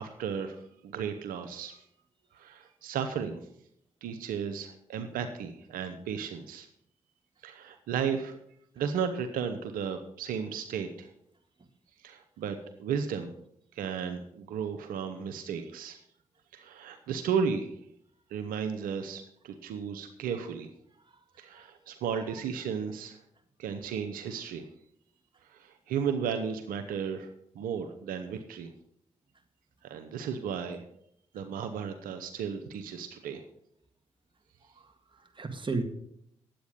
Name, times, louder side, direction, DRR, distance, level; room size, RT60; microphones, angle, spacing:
voice 1, 0.0-1.8 2.3-3.4 4.0-6.7 7.4-8.3 8.8-11.1 12.0-13.3 13.7-16.0 16.5-17.7 18.3-20.7 21.4-23.2 23.6-24.6 25.5-27.3 27.5-28.7 29.8-30.8 31.3-33.4, right 7 dB, 85° right, 7 dB, 0.8 m, -34 dB
voice 2, 21.1-21.7 34.8-35.8, right 3 dB, 35° right, 6 dB, 2.0 m, -36 dB
10.0 x 8.2 x 6.5 m, 0.71 s
supercardioid pair, 45°, 14 cm